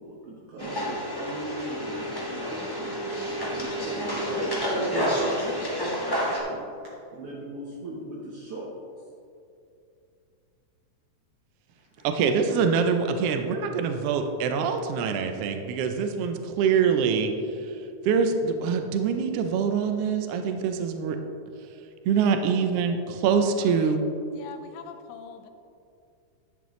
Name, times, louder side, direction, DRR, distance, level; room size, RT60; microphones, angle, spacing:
voice 1, 0.0-4.9 6.1-6.6 7.1-8.7 12.0-12.1, right 1 dB, 60° right, -5 dB, 1.8 m, -40 dB
sound 1, 0.6-6.4, equal, 20° left, 0.6 m, -29 dB
voice 2, 12.0-17.3 18.0-21.2 22.0-24.0, right 6 dB, 85° right, 6 dB, 1.3 m, -24 dB
voice 3, 23.6-24.0 24.3-25.5, left 8 dB, 80° left, 8 dB, 2.0 m, -43 dB
10.5 x 7.8 x 3.1 m, 2.5 s
omnidirectional pair, 3.5 m